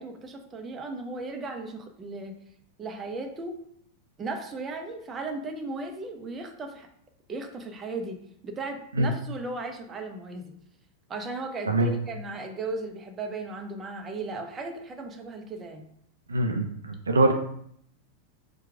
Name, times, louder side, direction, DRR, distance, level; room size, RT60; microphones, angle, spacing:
voice 1, 0.0-2.3 2.8-3.6 4.2-6.9 7.3-10.6 11.1-15.9, right 3 dB, 20° right, 4 dB, 0.6 m, -36 dB
voice 2, 16.3-17.3, right 2 dB, 75° right, 5 dB, 0.5 m, -23 dB
4.4 x 2.3 x 4.6 m, 0.69 s
figure-of-eight pair, 90°, 0 cm